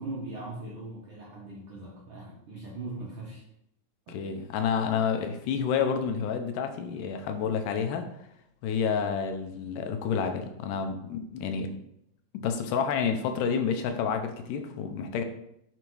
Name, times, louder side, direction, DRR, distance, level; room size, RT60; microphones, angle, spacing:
voice 1, 0.0-3.4 4.1-4.2, right 2 dB, 90° right, -5 dB, 1.0 m, -40 dB
voice 2, 4.1-8.1 8.6-11.7 12.3-15.2, left 6 dB, 85° left, 6 dB, 2.3 m, -29 dB
6.8 x 3.6 x 4.5 m, 0.77 s
omnidirectional pair, 3.7 m